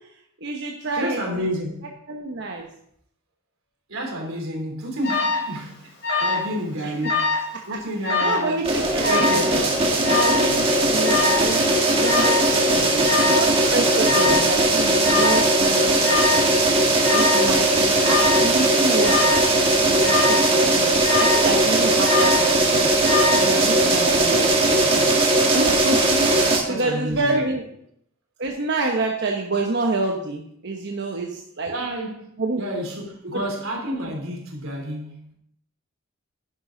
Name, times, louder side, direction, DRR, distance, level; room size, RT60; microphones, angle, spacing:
voice 1, 0.4-1.2 2.1-2.7 7.5-7.6 8.2-9.6 10.1-11.6 12.0-12.9 13.3-16.4 17.1-19.4 19.8-22.9 23.3-27.6 28.4-31.7 32.4-32.6, right 2 dB, 60° right, 1 dB, 1.1 m, -28 dB
voice 2, 1.0-1.9 3.9-5.9 6.2-7.4 7.6-8.7 9.1-9.7 12.7-13.3 14.0-14.4 17.2-18.0 24.0-24.3 26.6-27.5 31.7-35.3, equal, 90° right, 1 dB, 3.4 m, -30 dB
Alarm, 5.0-5.5 6.0-6.5 6.8-7.5 8.0-8.5 9.0-9.5 10.0-10.5 11.0-11.5 12.0-12.5 13.0-13.5 14.0-14.5 15.0-15.5 16.0-16.5 17.0-17.5 18.0-18.5 19.0-19.5 20.0-20.5 21.0-21.5 22.0-22.5 23.0-23.5, left 4 dB, 55° left, 4.6 m, -23 dB
sound 1, 8.6-26.6, right 2 dB, 30° right, 2.0 m, -19 dB
11.0 x 10.5 x 3.9 m, 0.70 s
head